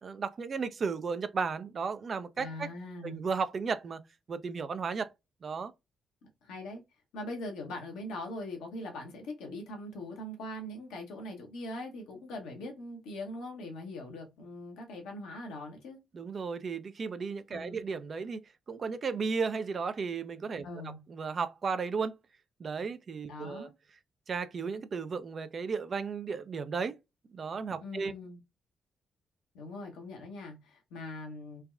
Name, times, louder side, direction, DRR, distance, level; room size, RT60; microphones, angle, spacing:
voice 1, 0.0-2.7 3.0-4.0 4.3-5.1 5.4-5.7 16.1-18.4 18.7-20.7 21.1-22.1 22.6-23.7 24.3-27.0 27.3-28.1, right 5 dB, 50° right, 0.4 m, -34 dB
voice 2, 2.4-3.2 6.2-6.8 7.1-16.0 17.5-17.8 20.6-21.0 23.3-23.7 27.8-28.4 29.5-31.6, left 1 dB, 75° left, 0.8 m, -41 dB
3.3 x 2.2 x 2.3 m
hypercardioid pair, 40°, 0 cm